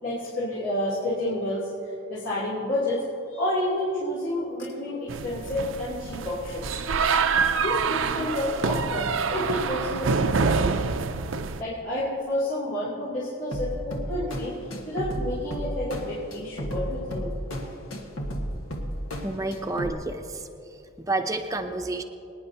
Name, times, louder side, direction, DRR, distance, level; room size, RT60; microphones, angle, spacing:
voice 1, 0.0-1.7 2.1-6.8 7.6-10.7 11.6-14.6 14.8-17.3, left 1 dB, 65° left, -9 dB, 3.1 m, -30 dB
sound 1, 5.1-11.6, right 5 dB, 70° right, 0.5 m, -26 dB
sound 2, 13.5-19.9, equal, 80° left, 1.5 m, -33 dB
voice 2, 19.2-20.2 21.1-22.0, right 2 dB, 15° right, 5 dB, 0.6 m, -29 dB
24.0 x 10.0 x 2.8 m, 2.7 s
head